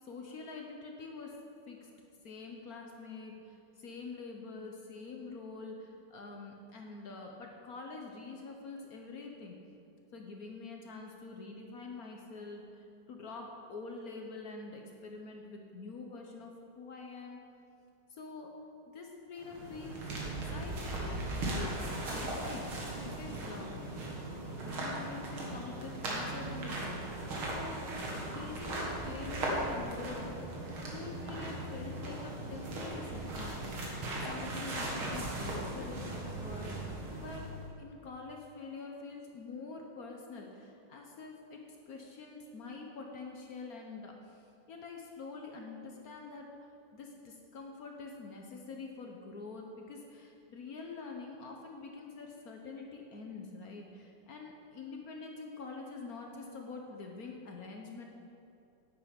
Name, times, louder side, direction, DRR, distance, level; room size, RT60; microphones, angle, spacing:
voice 1, 0.0-1.3 1.7-1.9 2.2-9.6 10.1-17.4 18.1-18.5 18.9-21.2 21.5-22.9 23.1-23.8 24.6-27.2 27.5-30.4 30.9-33.8 34.2-37.5 37.8-41.6 41.9-58.0, left 4 dB, 55° left, 1 dB, 1.1 m, -46 dB
sound 1, 19.4-37.6, right 1 dB, 75° right, 2.5 m, -38 dB
9.5 x 9.0 x 5.2 m, 2.6 s
omnidirectional pair, 2.3 m